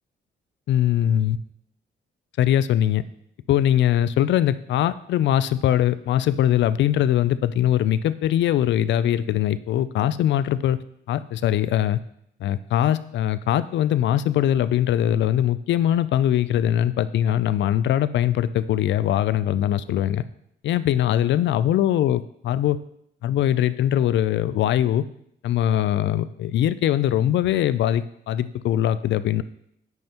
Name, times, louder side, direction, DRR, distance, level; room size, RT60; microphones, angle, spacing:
voice 1, 0.7-1.4 2.4-3.0 3.5-10.8 11.1-12.0 12.4-20.2 20.6-22.8 23.2-25.0 25.4-29.4, left 11 dB, 65° left, 15 dB, 0.4 m, -21 dB
9.1 x 5.4 x 3.0 m, 0.73 s
cardioid pair, 90°, 20 cm